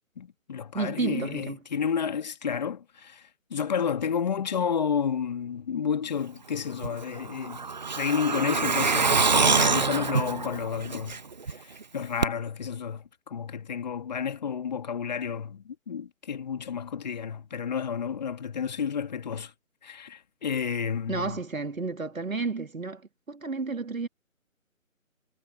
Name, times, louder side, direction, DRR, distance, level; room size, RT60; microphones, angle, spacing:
voice 1, 0.2-7.6 7.9-11.2 11.5-19.5 19.8-21.4, left 7 dB, 30° left, 2.3 m, -31 dB
voice 2, 0.7-1.6 21.1-24.1, right 4 dB, 75° right, 2.6 m, -31 dB
Truck, 6.8-11.5 11.8-11.9 12.2-12.3, right 4 dB, 35° right, 0.9 m, -25 dB
figure-of-eight pair, 155°, 41 cm